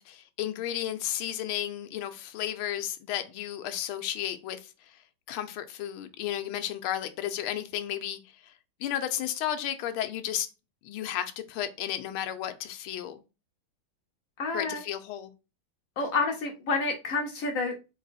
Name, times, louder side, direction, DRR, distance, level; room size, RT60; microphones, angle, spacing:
voice 1, 0.0-4.6 5.3-8.2 8.8-10.5 10.8-13.2 14.5-15.3, left 11 dB, 85° left, 1.5 m, -33 dB
voice 2, 14.4-14.8 16.0-17.8, left 3 dB, 65° left, 0.8 m, -29 dB
4.2 x 3.0 x 4.0 m
omnidirectional pair, 2.3 m